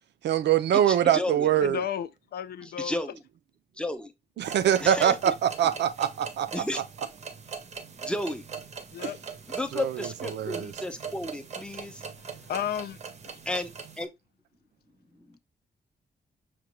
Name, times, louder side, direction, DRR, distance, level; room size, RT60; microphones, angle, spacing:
voice 1, 0.2-1.8 4.4-6.5 9.0-9.1 9.7-10.7, right 10 dB, 85° right, 0.5 m, -24 dB
voice 2, 0.9-1.5 2.6-3.2 3.8-4.1 4.8-5.3 6.5-6.8 8.0-8.4 9.5-12.0 13.5-13.7 14.0-14.1 15.2-15.4, left 1 dB, 5° left, 0.5 m, -33 dB
voice 3, 1.6-3.0 8.9-9.2 12.2-13.0, left 10 dB, 65° left, 0.4 m, -33 dB
sound 1, 4.4-14.1, right 6 dB, 40° right, 0.6 m, -41 dB
5.9 x 2.3 x 3.0 m
wide cardioid pair, 180°, 17 cm